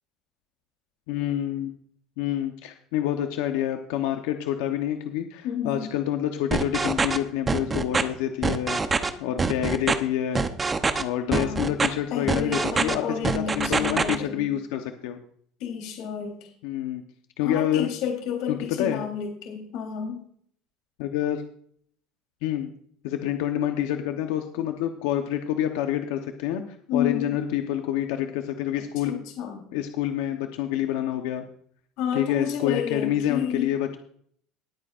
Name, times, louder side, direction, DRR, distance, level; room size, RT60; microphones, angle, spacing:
voice 1, 1.1-1.7 2.2-10.5 11.0-15.2 16.6-17.0 17.4-17.9 18.5-19.0 21.0-21.4 22.4-22.7 23.0-29.2 29.7-31.4 32.1-34.0, left 11 dB, 85° left, 5 dB, 1.0 m, -27 dB
voice 2, 5.4-5.9 11.3-11.6 12.1-14.5 15.6-16.5 17.4-20.2 26.9-27.4 29.1-29.6 32.0-33.7, left 7 dB, 65° left, 1 dB, 3.6 m, -30 dB
sound 1, 6.5-7.2 7.5-8.0 8.4-9.1 9.4-9.9 10.4-11.0 11.3-11.9 12.3-13.0 13.2-14.2, right 4 dB, 15° right, 0.8 m, -24 dB
19.0 x 9.3 x 2.5 m, 0.62 s
cardioid pair, 150°, 0 cm